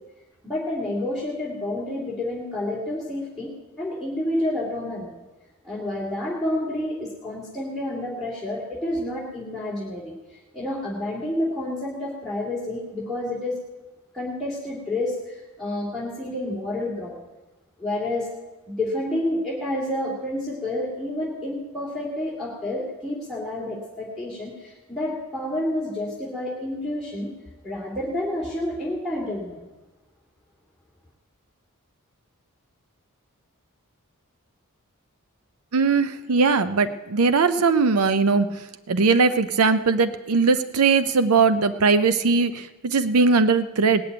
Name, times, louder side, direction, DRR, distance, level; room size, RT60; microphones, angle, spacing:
voice 1, 0.4-3.5 3.8-5.1 5.6-13.6 14.1-17.1 17.8-18.3 18.7-27.3 27.6-29.6, left 1 dB, ahead, -8 dB, 2.6 m, -29 dB
voice 2, 35.7-38.5 38.9-44.0, right 4 dB, 80° right, 10 dB, 0.6 m, -20 dB
19.0 x 6.8 x 9.2 m, 1.1 s
head